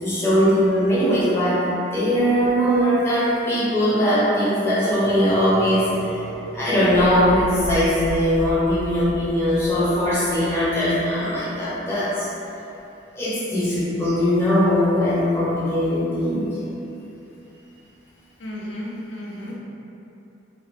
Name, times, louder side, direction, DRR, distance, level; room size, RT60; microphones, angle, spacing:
voice 1, 0.0-5.8 6.5-12.3 13.2-16.5, equal, 15° left, -10 dB, 0.5 m, -20 dB
Short eerie chorus, 5.0-10.7, equal, 90° right, 0.4 m, -34 dB
voice 2, 18.4-19.5, left 1 dB, 70° left, -5 dB, 0.4 m, -33 dB
2.3 x 2.1 x 2.8 m, 2.9 s
head